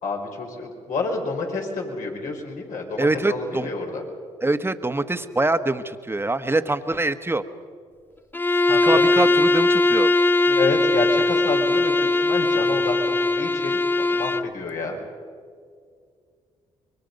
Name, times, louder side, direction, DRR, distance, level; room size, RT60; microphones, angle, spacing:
voice 1, 0.0-4.0 8.7-9.0 10.5-15.0, left 3 dB, 70° left, 0 dB, 4.9 m, -29 dB
voice 2, 3.0-3.7 4.4-7.4 8.8-10.1, right 2 dB, 15° right, 9 dB, 1.4 m, -24 dB
Bowed string instrument, 8.3-14.5, left 2 dB, 15° left, 0.8 m, -20 dB
26.0 x 23.0 x 5.4 m, 2.1 s
hypercardioid pair, 50°, 14 cm